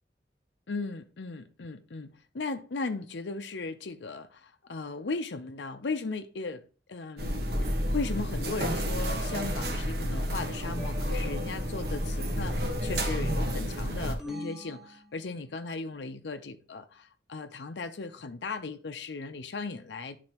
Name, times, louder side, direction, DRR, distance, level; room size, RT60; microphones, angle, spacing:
voice 1, 0.7-6.6 6.9-20.2, left 3 dB, 75° left, 0.6 m, -37 dB
sound 1, 7.2-14.1, equal, 60° right, 1.3 m, -30 dB
sound 2, 14.2-15.9, left 2 dB, ahead, 1.3 m, -43 dB
10.5 x 4.1 x 2.9 m
head